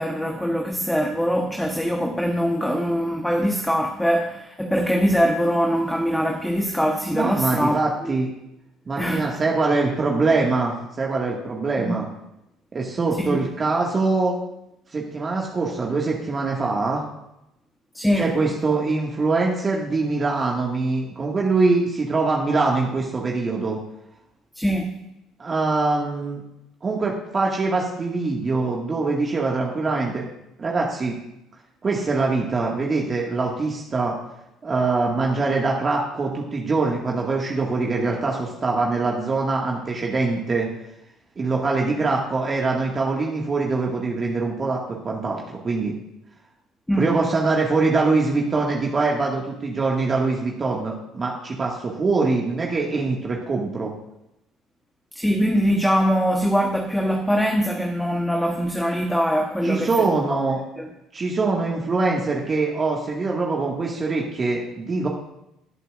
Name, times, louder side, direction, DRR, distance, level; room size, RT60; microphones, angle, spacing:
voice 1, 0.0-8.1 9.0-9.4 11.8-12.0 13.2-13.4 17.9-18.5 24.5-25.0 46.9-47.1 55.1-60.4 60.8-60.9, equal, 5° left, 1.1 m, -23 dB
voice 2, 7.1-8.3 8.9-12.1 12.7-14.4 14.9-17.0 18.2-23.8 25.4-26.4 26.8-30.3 30.6-31.2 31.8-34.2 34.6-40.7 41.4-45.9 47.0-53.9 59.6-60.6 61.1-65.1, right 3 dB, 35° right, 1.9 m, -23 dB
20.0 x 8.0 x 2.6 m
hypercardioid pair, 60°, 0 cm